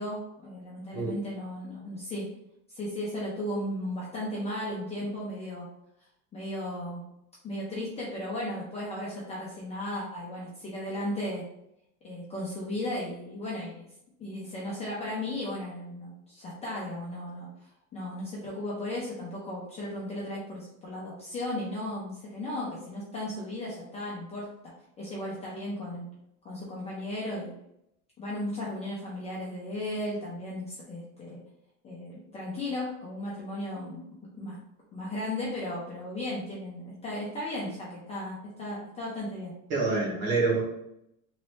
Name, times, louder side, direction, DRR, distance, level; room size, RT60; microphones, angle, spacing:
voice 1, 0.0-2.3 2.7-5.7 6.3-7.0 7.4-11.5 12.0-13.8 14.2-24.5 25.0-26.1 26.4-27.5 28.2-31.4 31.8-34.0 34.4-34.6 34.9-39.5, left 1 dB, 15° left, -6 dB, 0.4 m, -35 dB
voice 2, 39.7-40.6, right 3 dB, 45° right, -2 dB, 1.3 m, -26 dB
3.1 x 2.7 x 3.0 m, 0.80 s
supercardioid pair, 145°, 44 cm